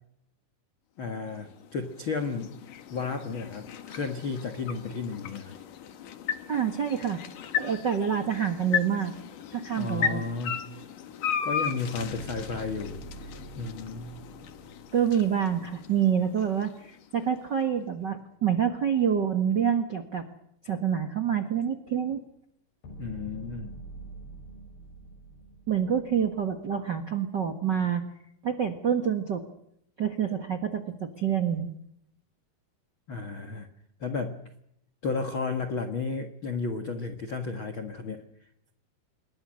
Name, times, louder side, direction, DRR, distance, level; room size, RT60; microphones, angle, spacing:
voice 1, 1.0-2.5 2.9-5.6 9.8-10.6 11.4-14.2 23.0-23.7 33.1-33.7 34.0-34.4 35.0-38.2, left 4 dB, 45° left, 6 dB, 1.8 m, -33 dB
sound 1, 1.2-17.4, left 8 dB, 60° left, 3.0 m, -36 dB
voice 2, 6.5-7.2 7.6-9.1 9.5-10.2 14.9-20.2 20.6-22.2 25.7-28.0 28.4-29.4 30.0-31.7, right 8 dB, 50° right, 7 dB, 1.3 m, -27 dB
sound 2, 12.0-16.3 22.8-26.6, right 2 dB, 85° left, 9.0 m, -46 dB
27.5 x 22.5 x 6.5 m, 0.75 s
omnidirectional pair, 4.5 m